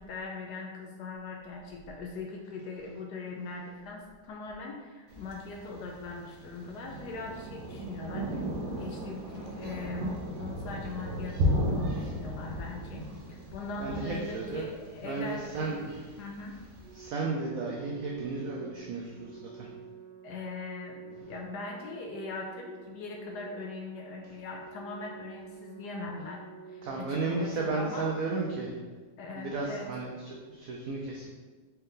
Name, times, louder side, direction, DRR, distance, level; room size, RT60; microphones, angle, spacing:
voice 1, 0.0-8.5 8.8-15.8 16.2-16.6 20.2-26.4 26.7-28.1 29.2-29.9, left 3 dB, 75° left, 0 dB, 1.0 m, -40 dB
Thunder, 5.1-17.0, equal, 65° right, 1.2 m, -35 dB
voice 2, 13.8-14.7 15.0-16.0 16.9-19.7 26.8-28.7 29.4-31.3, right 3 dB, 85° right, -1 dB, 0.7 m, -34 dB
Organ, 16.8-27.8, right 6 dB, 25° right, 1.0 m, -50 dB
4.3 x 3.3 x 3.7 m, 1.4 s
omnidirectional pair, 2.1 m